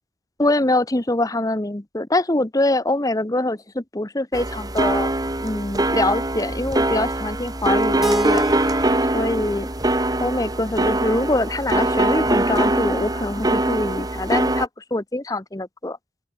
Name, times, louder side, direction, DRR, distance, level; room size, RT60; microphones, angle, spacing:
voice 1, 0.4-5.1 5.4-8.4 9.1-9.7 10.2-16.0, left 2 dB, 20° left, 0.9 m, -24 dB
sound 1, 4.3-14.7, right 1 dB, 20° right, 2.4 m, -22 dB
Keyboard (musical), 8.0-10.9, equal, ahead, 1.2 m, -29 dB
open air
head